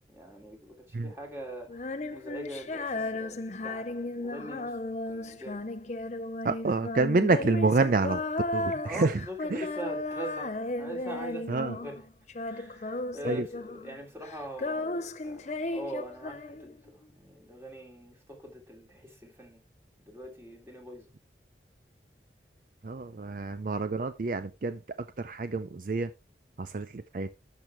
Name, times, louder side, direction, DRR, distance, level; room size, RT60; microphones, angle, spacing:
voice 1, 0.1-4.8 5.1-5.6 8.8-12.0 12.4-19.6 20.1-21.1 23.1-23.2, right 1 dB, 15° right, 2.9 m, -43 dB
Female singing, 1.7-12.0 12.3-14.0 14.2-16.9, left 2 dB, 40° left, 0.6 m, -35 dB
voice 2, 6.4-8.2 8.5-9.2 9.5-9.7 11.5-11.8 13.2-13.5 22.8-24.8 25.2-26.1 26.6-27.3, right 3 dB, 50° right, 0.5 m, -28 dB
12.0 x 6.3 x 3.4 m
head